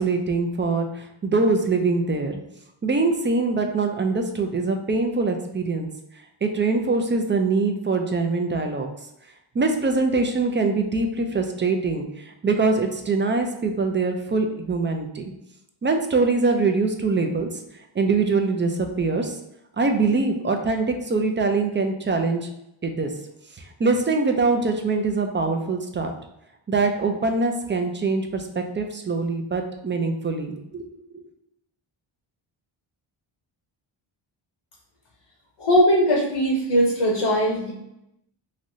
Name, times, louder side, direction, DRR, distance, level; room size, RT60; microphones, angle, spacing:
voice 1, 0.0-2.4 2.8-5.9 6.4-8.9 9.5-15.3 15.8-17.5 18.0-19.3 19.8-22.5 22.8-23.1 23.8-26.1 26.7-30.8 31.1-31.2, right 3 dB, 25° right, 4 dB, 0.3 m, -23 dB
voice 2, 35.6-37.7, equal, 70° left, -3 dB, 0.9 m, -20 dB
3.1 x 2.6 x 2.6 m, 0.85 s
cardioid pair, 70°, 49 cm